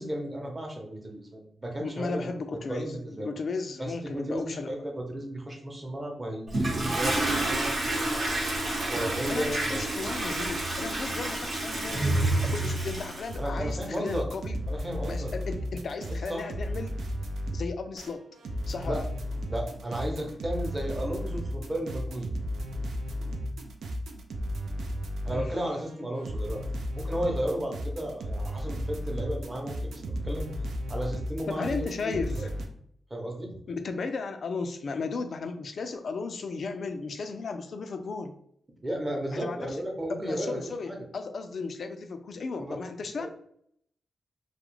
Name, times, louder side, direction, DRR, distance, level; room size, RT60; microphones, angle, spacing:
voice 1, 0.0-2.3 2.5-3.3 3.8-7.7 8.8-9.8 13.4-14.3 14.7-15.3 16.1-16.5 18.9-19.0 19.5-22.3 25.2-26.6 26.9-30.5 30.9-31.8 32.0-32.5 33.1-33.6 38.8-41.0 42.6-42.8 43.2-43.3, right 1 dB, 30° right, 1 dB, 0.7 m, -34 dB
voice 2, 1.8-2.9 3.2-4.7 9.3-14.6 15.1-17.0 17.5-18.2 18.7-19.0 25.3-25.5 31.5-32.5 33.7-38.3 39.3-39.8 40.2-43.3, left 4 dB, 65° left, 8 dB, 0.3 m, -35 dB
Toilet flush, 6.5-13.3, right 1 dB, 65° right, 0.8 m, -29 dB
sound 1, 13.3-25.5 25.8-32.7, equal, 85° right, 0.3 m, -34 dB
2.3 x 2.0 x 3.0 m, 0.68 s
cardioid pair, 65°, 0 cm